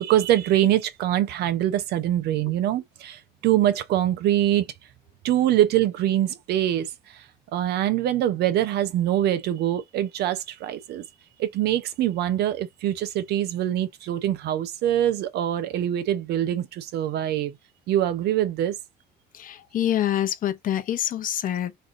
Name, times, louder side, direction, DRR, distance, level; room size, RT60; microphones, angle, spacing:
voice 1, 0.0-4.7 5.2-7.2 7.5-11.0 11.4-17.6 17.9-18.8, right 12 dB, 75° right, 0.9 m, -24 dB
voice 2, 19.3-21.8, left 11 dB, 55° left, 0.8 m, -26 dB
3.4 x 2.6 x 3.7 m
cardioid pair, 110°, 17 cm